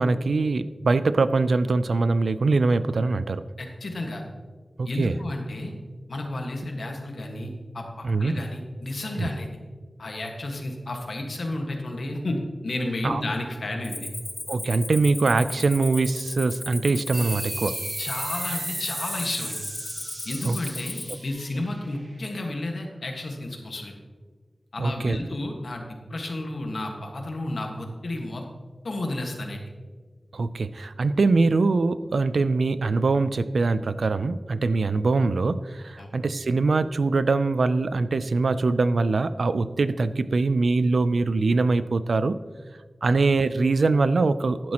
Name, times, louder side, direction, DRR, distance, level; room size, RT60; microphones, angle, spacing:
voice 1, 0.0-3.5 4.8-5.2 8.0-8.4 9.2-9.3 13.0-13.2 14.5-17.8 20.4-20.6 24.8-25.2 30.3-42.4 43.0-44.7, right 3 dB, 85° right, 14 dB, 0.4 m, -23 dB
voice 2, 3.6-4.2 4.8-5.7 6.1-7.5 7.7-9.5 10.0-14.1 18.0-19.6 20.2-23.9 24.7-28.4 28.8-29.6 36.0-36.1, left 1 dB, 80° left, 2 dB, 1.5 m, -32 dB
Cricket, 13.8-21.3, left 2 dB, 45° left, 1.0 m, -36 dB
sound 1, 17.1-22.3, right 2 dB, 45° right, 1.1 m, -36 dB
11.5 x 10.5 x 2.9 m, 1.5 s
wide cardioid pair, 80°, 0 cm